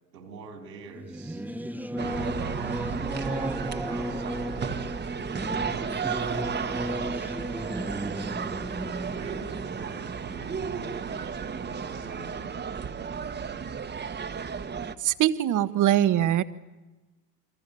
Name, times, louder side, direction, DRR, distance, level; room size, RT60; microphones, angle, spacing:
voice 1, 0.1-1.4 1.9-2.8 3.0-5.0 5.5-7.0 9.2-12.6, right 4 dB, 80° right, 5 dB, 4.9 m, -45 dB
Singing / Musical instrument, 0.9-11.0, right 1 dB, 5° right, 1.0 m, -35 dB
sound 1, 2.0-14.9, right 6 dB, 20° right, 1.5 m, -33 dB
voice 2, 15.0-16.4, right 12 dB, 35° right, 14 dB, 1.4 m, -22 dB
28.5 x 24.5 x 6.9 m, 1.1 s
hypercardioid pair, 80°, 50 cm